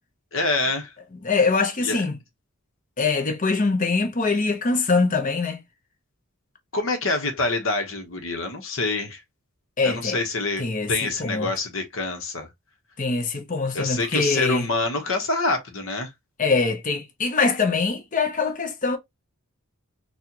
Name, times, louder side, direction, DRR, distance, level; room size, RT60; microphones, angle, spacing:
voice 1, 0.3-0.9 1.8-2.0 6.7-9.2 9.8-12.5 13.7-16.1, left 3 dB, 65° left, 1.1 m, -26 dB
voice 2, 1.2-2.2 3.0-5.6 9.8-10.2 10.6-11.5 13.0-14.7 16.4-19.0, left 4 dB, 35° left, 0.8 m, -23 dB
4.2 x 2.4 x 2.9 m
head